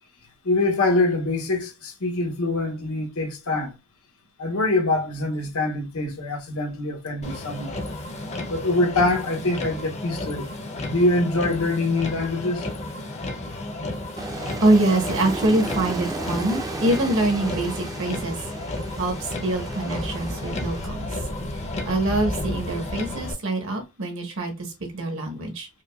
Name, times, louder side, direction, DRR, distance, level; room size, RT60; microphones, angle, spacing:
voice 1, 0.4-3.7 4.4-7.8 8.5-10.5 10.8-12.7, left 2 dB, 80° left, 1.0 m, -24 dB
Motor vehicle (road), 7.2-23.3, left 1 dB, 30° left, 0.6 m, -32 dB
Aircraft, 14.2-20.9, right 2 dB, 15° right, 0.5 m, -34 dB
voice 2, 14.6-18.4 19.0-21.2 21.8-25.7, right 2 dB, 65° right, 1.2 m, -24 dB
5.0 x 2.3 x 2.2 m
head